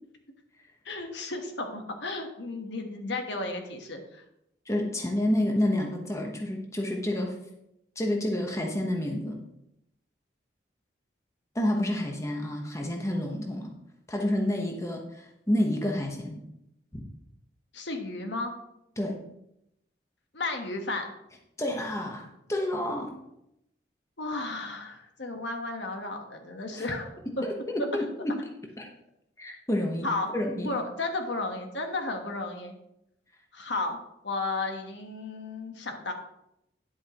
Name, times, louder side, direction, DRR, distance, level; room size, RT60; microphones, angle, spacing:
voice 1, 0.8-4.2 17.7-18.5 20.3-21.1 24.2-27.1 27.4-27.5 30.0-30.3 30.6-32.8 33.5-34.0 34.2-36.1, left 2 dB, 75° left, 4 dB, 1.3 m, -33 dB
voice 2, 4.7-7.4 8.0-9.4 11.5-13.7 14.1-16.4 16.9-17.0 19.0-19.2 21.6-23.1 26.7-26.9 27.4-28.4 28.8-28.9 29.4-30.1 30.3-30.7, left 1 dB, 15° left, 1 dB, 1.0 m, -29 dB
10.5 x 8.0 x 3.0 m, 0.82 s
head